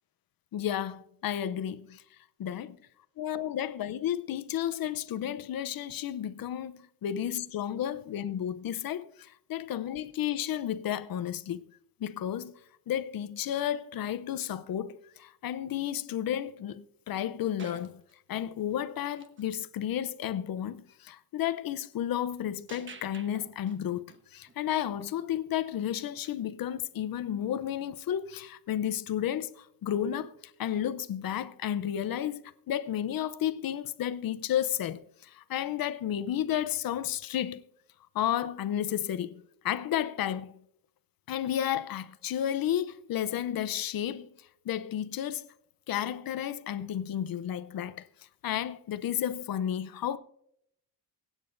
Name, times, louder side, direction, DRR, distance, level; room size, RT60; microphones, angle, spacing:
voice 1, 0.5-2.0 2.4-2.7 3.2-11.6 12.0-12.5 12.9-18.0 18.3-24.0 24.3-37.6 38.1-40.6 41.3-44.3 44.6-45.5 45.9-48.1 48.4-50.2, left 10 dB, 60° left, 0.7 m, -32 dB
sound 1, 17.6-19.5 19.8-20.1 22.7-24.6 26.2-26.4 30.7-30.8, right 4 dB, 30° right, 1.1 m, -50 dB
24.0 x 9.0 x 2.6 m
cardioid pair, 155°, 41 cm